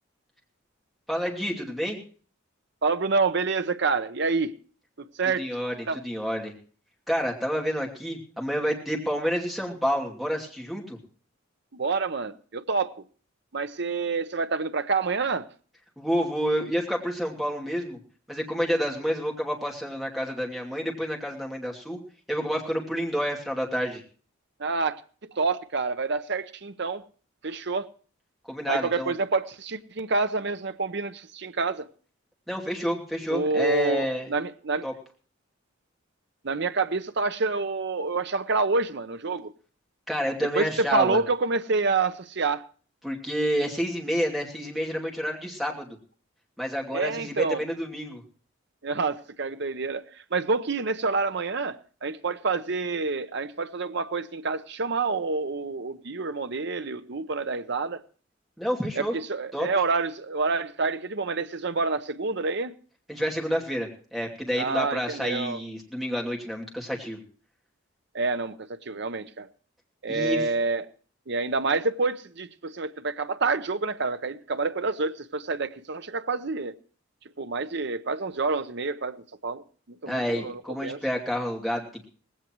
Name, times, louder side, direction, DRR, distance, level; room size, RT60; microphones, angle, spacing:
voice 1, 1.1-2.0 5.4-6.5 7.1-11.0 16.0-18.0 18.3-22.0 22.3-24.0 28.5-29.1 32.5-34.3 34.8-34.9 40.1-41.2 43.0-46.0 46.6-48.2 58.6-59.1 59.5-59.7 63.1-67.2 70.1-70.4 80.1-82.0, equal, ahead, 2.6 m, -29 dB
voice 2, 2.8-4.5 5.0-5.5 5.9-6.0 11.7-12.9 13.5-15.5 24.6-25.0 25.3-27.0 27.4-27.9 28.7-31.9 33.3-34.9 36.4-39.5 40.5-42.6 46.9-47.6 48.8-50.0 50.3-58.0 59.0-62.7 64.6-65.6 68.1-69.5 70.0-70.9 71.3-76.8 77.4-79.6 79.9-81.0, right 4 dB, 60° right, 0.8 m, -28 dB
19.0 x 16.5 x 3.1 m
head